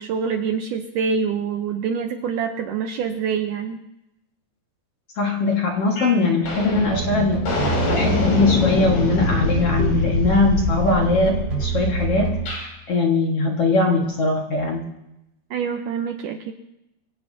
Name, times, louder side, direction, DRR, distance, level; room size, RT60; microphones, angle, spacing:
voice 1, 0.0-3.8 15.5-16.5, right 6 dB, 75° right, 5 dB, 2.0 m, -25 dB
voice 2, 5.2-12.3 12.6-14.8, left 3 dB, 50° left, 0 dB, 2.2 m, -21 dB
sound 1, 6.0-6.1 6.4-12.6, left 2 dB, 70° left, 6.3 m, -24 dB
sound 2, 6.9-8.7 9.8-10.2 10.9-12.7, right 7 dB, 45° right, 4.3 m, -28 dB
24.5 x 17.0 x 2.8 m, 0.88 s
omnidirectional pair, 4.5 m